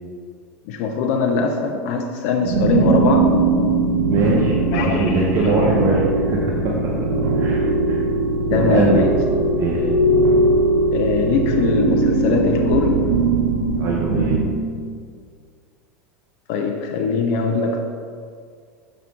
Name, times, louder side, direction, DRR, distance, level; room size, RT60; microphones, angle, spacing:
voice 1, 0.6-3.4 4.7-5.8 7.1-7.2 8.5-9.2 10.9-13.1 16.5-17.8, left 4 dB, 60° left, 3 dB, 0.6 m, -22 dB
sound 1, 2.4-14.4, right 2 dB, 80° right, 1.1 m, -19 dB
voice 2, 4.0-6.9 7.3-7.6 7.9-8.0 8.6-9.0 9.5-9.9 13.8-14.4, right 2 dB, 45° right, -3 dB, 1.1 m, -22 dB
6.8 x 5.9 x 3.8 m, 2.1 s
hypercardioid pair, 95°, 8 cm